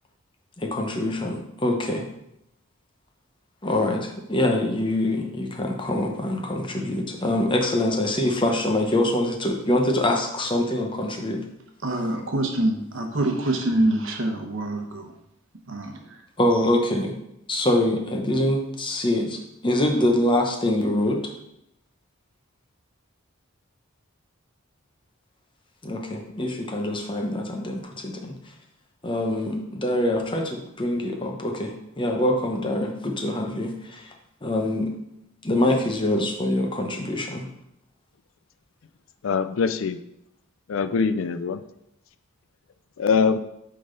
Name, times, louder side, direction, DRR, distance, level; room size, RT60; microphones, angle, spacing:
voice 1, 0.6-2.0 3.6-11.4 16.4-17.1 17.5-21.2 25.8-28.3 29.0-34.1 34.4-34.9 35.4-37.5, left 1 dB, 20° left, 2 dB, 0.8 m, -24 dB
voice 2, 11.8-15.1 15.7-16.2, right 1 dB, 60° right, 3 dB, 1.0 m, -25 dB
voice 3, 39.2-40.0 40.7-41.6 43.0-43.4, left 5 dB, 65° left, 11 dB, 0.4 m, -23 dB
8.4 x 3.9 x 3.9 m, 0.82 s
head